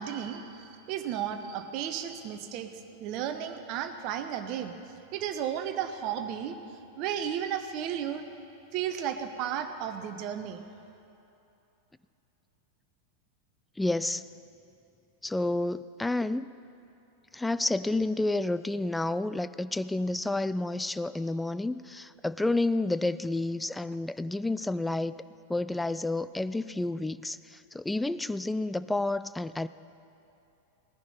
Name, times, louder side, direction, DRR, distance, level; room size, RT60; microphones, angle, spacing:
voice 1, 0.0-2.7 3.0-4.7 5.1-6.5 7.0-8.3 8.7-10.6, right 9 dB, 40° right, 8 dB, 0.9 m, -33 dB
voice 2, 13.8-14.2 15.2-16.6 17.3-25.2 25.5-29.7, left 2 dB, 5° left, 14 dB, 0.3 m, -30 dB
18.5 x 10.5 x 5.5 m, 2.9 s
figure-of-eight pair, 90°, 0 cm